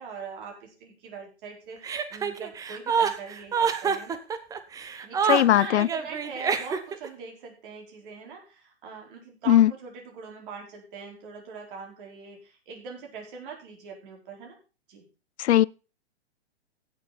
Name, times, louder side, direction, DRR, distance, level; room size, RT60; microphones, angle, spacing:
voice 1, 0.0-4.2 5.0-14.5 14.9-15.1, right 5 dB, 50° right, 4.8 m, -42 dB
Chuckle chortle, 1.8-7.1, right 6 dB, 10° right, 0.7 m, -27 dB
voice 2, 5.3-5.9 9.5-9.7 15.4-15.6, left 12 dB, 75° left, 0.5 m, -18 dB
16.0 x 6.9 x 4.2 m
hypercardioid pair, 130°, 34 cm